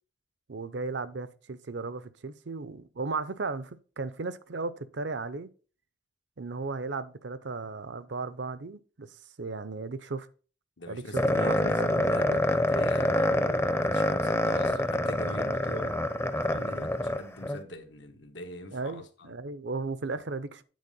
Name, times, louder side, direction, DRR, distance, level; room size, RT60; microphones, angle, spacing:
voice 1, 0.5-5.5 6.4-10.3 10.9-12.4 15.5-15.6 18.7-20.6, right 3 dB, 75° right, 0.7 m, -36 dB
voice 2, 10.8-16.0 16.3-19.3, left 1 dB, 85° left, 1.4 m, -42 dB
sound 1, 11.2-17.6, left 1 dB, 15° left, 0.6 m, -26 dB
9.4 x 4.3 x 5.4 m
head